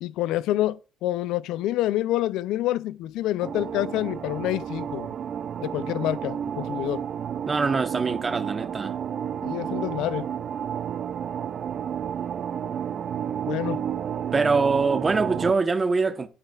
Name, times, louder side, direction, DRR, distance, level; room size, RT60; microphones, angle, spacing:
voice 1, 0.0-5.1 5.6-7.0 9.4-10.3 13.5-13.8, left 14 dB, 75° left, 0.3 m, -27 dB
sound 1, 3.4-15.5, right 8 dB, 55° right, 0.3 m, -31 dB
voice 2, 7.5-8.9 14.3-16.3, right 4 dB, 30° right, 0.9 m, -23 dB
13.5 x 4.8 x 2.3 m
supercardioid pair, 70°, 0 cm